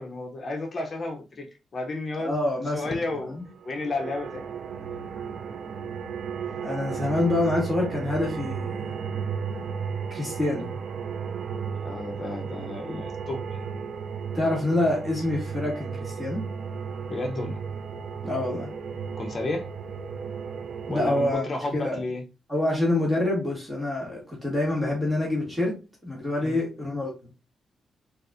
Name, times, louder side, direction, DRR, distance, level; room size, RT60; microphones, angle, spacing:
voice 1, 0.0-1.5 1.7-2.3 2.7-3.4 3.6-4.5 11.8-13.6 17.1-17.6 19.2-19.7 20.9-22.2 26.4-26.6, left 2 dB, 40° left, 0.6 m, -32 dB
voice 2, 2.2-3.4 6.6-9.0 10.1-10.8 14.3-16.4 18.2-18.7 20.9-21.5 21.7-22.0 22.5-25.8 26.0-27.3, left 2 dB, 10° right, 1.6 m, -27 dB
sound 1, 3.5-21.3, right 6 dB, 60° right, 0.4 m, -34 dB
4.0 x 2.4 x 2.5 m
cardioid pair, 90°, 0 cm